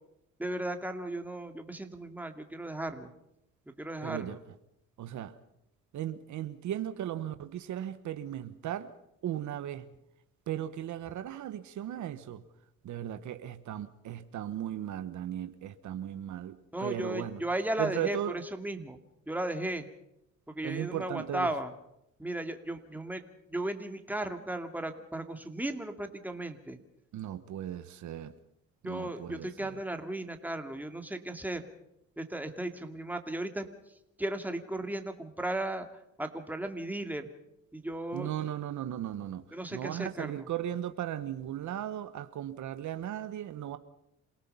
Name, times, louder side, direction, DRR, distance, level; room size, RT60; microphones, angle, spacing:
voice 1, 0.4-3.1 3.8-4.4 16.7-18.2 18.5-19.0 19.3-19.9 20.5-21.7 22.2-23.2 23.5-26.8 28.8-31.6 32.2-33.7 34.2-35.9 36.2-37.3 37.7-38.3 39.5-40.5, right 1 dB, 5° right, 6 dB, 2.3 m, -35 dB
voice 2, 4.0-4.4 5.0-5.4 5.9-8.9 9.2-9.9 10.5-12.5 12.8-17.4 17.8-18.4 20.6-21.5 27.1-28.4 28.8-29.8 38.1-43.8, right 11 dB, 75° right, 11 dB, 1.2 m, -37 dB
28.0 x 18.0 x 5.6 m, 0.81 s
cardioid pair, 90°, 30 cm